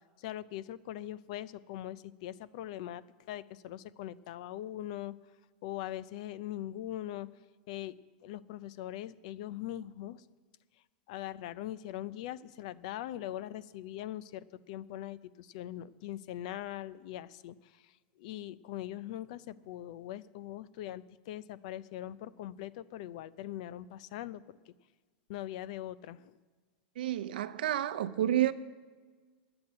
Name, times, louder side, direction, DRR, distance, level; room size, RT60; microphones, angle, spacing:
voice 1, 0.2-3.0 3.3-5.1 5.6-7.3 7.7-7.9 8.2-10.2 11.1-17.9 18.2-24.7 25.3-26.4, left 13 dB, 45° left, 0.4 m, -41 dB
voice 2, 27.0-28.5, right 12 dB, 80° right, 0.7 m, -30 dB
10.5 x 7.8 x 9.6 m
supercardioid pair, 170°, 5 cm